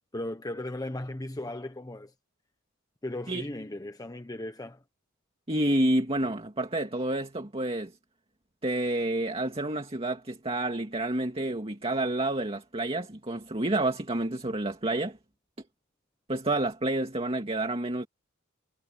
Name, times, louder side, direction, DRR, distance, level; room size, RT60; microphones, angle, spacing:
voice 1, 0.1-2.1 3.0-4.8, left 1 dB, 15° left, 1.1 m, -36 dB
voice 2, 5.5-7.9 8.6-15.2 16.3-18.1, right 1 dB, 30° right, 2.3 m, -29 dB
head